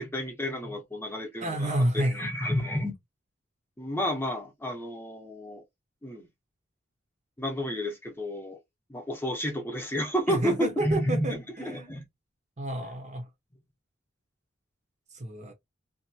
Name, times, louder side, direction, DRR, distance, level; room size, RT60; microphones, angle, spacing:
voice 1, 0.0-2.9 3.8-5.6 6.0-6.3 7.4-8.6 8.9-12.0, equal, 10° left, 0.8 m, -31 dB
voice 2, 1.4-2.3 10.3-11.9 12.6-13.3 15.1-15.5, right 1 dB, 35° right, 0.7 m, -30 dB
2.7 x 2.4 x 2.8 m
head